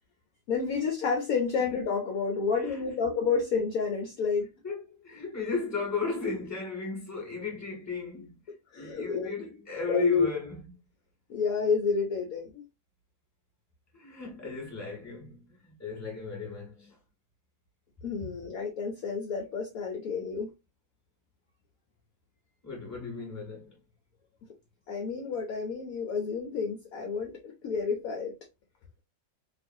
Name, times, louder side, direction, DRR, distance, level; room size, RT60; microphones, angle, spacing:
voice 1, 0.5-4.5 8.7-9.3 9.9-10.3 11.3-12.6 18.0-20.5 24.9-28.3, left 5 dB, 65° left, 0.9 m, -29 dB
voice 2, 2.5-3.1 4.6-10.7 13.9-17.0 18.2-18.3 22.6-23.8, left 4 dB, 10° left, 1.4 m, -36 dB
3.0 x 2.4 x 2.6 m
omnidirectional pair, 2.0 m